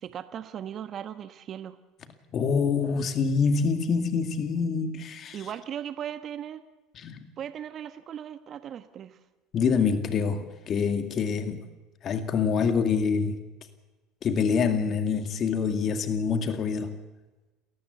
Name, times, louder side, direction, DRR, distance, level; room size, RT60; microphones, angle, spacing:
voice 1, 0.0-1.8 5.3-6.6 7.4-9.2, right 9 dB, 45° right, 11 dB, 1.2 m, -38 dB
voice 2, 2.3-5.4 7.0-7.3 9.5-11.6 12.0-13.4 14.2-16.9, left 5 dB, 45° left, 8 dB, 2.3 m, -26 dB
29.5 x 14.0 x 8.2 m, 1.2 s
hypercardioid pair, 85°, 0 cm